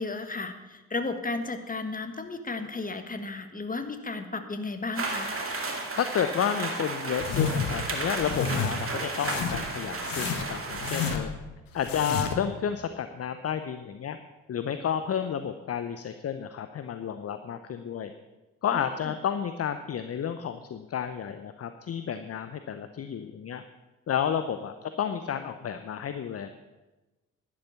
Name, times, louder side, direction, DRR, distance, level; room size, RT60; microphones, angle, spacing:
voice 1, 0.0-5.4 18.7-19.1, left 3 dB, 20° left, 8 dB, 1.5 m, -34 dB
sound 1, 5.0-11.2, right 3 dB, 35° right, 2.4 m, -33 dB
voice 2, 6.0-11.3 11.7-14.2 14.5-18.1 18.6-23.6 24.1-26.5, left 8 dB, 40° left, 10 dB, 0.8 m, -31 dB
sound 2, 7.2-7.8 8.2-8.7 9.2-9.7 10.0-11.4 11.8-12.5, left 6 dB, 60° left, 1.4 m, -30 dB
11.0 x 11.0 x 5.8 m, 1.1 s
hypercardioid pair, 40°, 38 cm